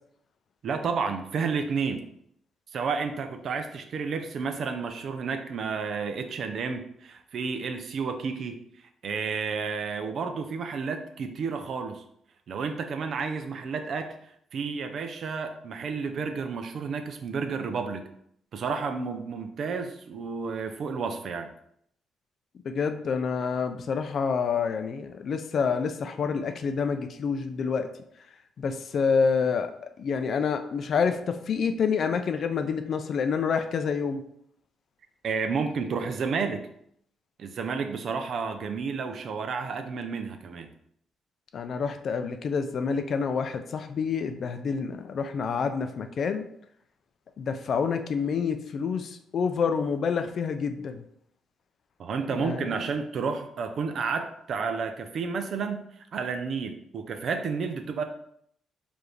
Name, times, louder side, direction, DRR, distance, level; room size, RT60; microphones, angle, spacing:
voice 1, 0.6-2.1 2.7-8.6 9.0-12.0 12.5-14.1 14.5-18.0 18.5-21.5 35.2-36.6 37.4-40.7 52.0-55.8 56.1-58.0, right 5 dB, 60° right, 7 dB, 0.5 m, -31 dB
voice 2, 22.6-27.9 28.6-34.2 41.5-46.5 47.4-51.0 52.3-52.8, left 5 dB, 55° left, 8 dB, 0.4 m, -28 dB
4.8 x 2.6 x 3.1 m, 0.71 s
cardioid pair, 90°, 0 cm